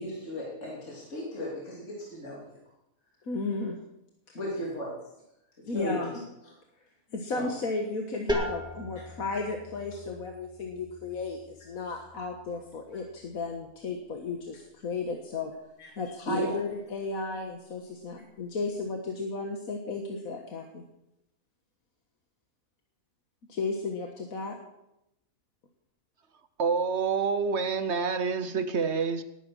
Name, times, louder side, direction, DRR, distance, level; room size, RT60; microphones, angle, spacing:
voice 1, 0.0-2.4 4.3-5.0 5.7-6.0 7.3-7.5 15.8-15.9 16.3-16.5, equal, 60° left, -4 dB, 3.6 m, -35 dB
voice 2, 3.2-3.8 4.3-4.4 5.7-6.1 7.1-15.5 16.0-20.8 23.5-24.6, left 3 dB, 75° left, 2 dB, 1.9 m, -34 dB
sound 1, 8.3-13.8, left 1 dB, 5° right, 2.0 m, -38 dB
voice 3, 26.6-29.2, right 5 dB, 55° right, 11 dB, 1.2 m, -27 dB
19.5 x 9.7 x 6.3 m, 0.86 s
omnidirectional pair, 1.5 m